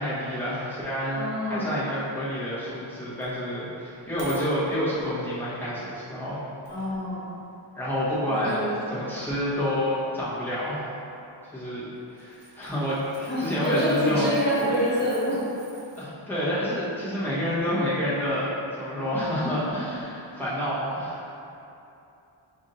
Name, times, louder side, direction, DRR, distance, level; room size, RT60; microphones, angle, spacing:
voice 1, 0.0-6.4 7.7-8.6 8.9-10.8 11.5-14.3 16.0-21.2, equal, 5° left, -11 dB, 1.2 m, -28 dB
voice 2, 1.1-1.7 6.7-7.2 8.3-9.0 13.3-15.4, equal, 20° left, -11 dB, 1.4 m, -26 dB
sound 1, 3.2-3.3 3.8-5.2 5.9-6.0 6.6-7.2 7.4-7.5 8.4-9.4 10.6-10.9 11.1-11.2 11.8-16.0 19.9-20.0, right 3 dB, 45° right, 1.0 m, -50 dB
5.4 x 3.5 x 2.6 m, 2.8 s
wide cardioid pair, 160°, 47 cm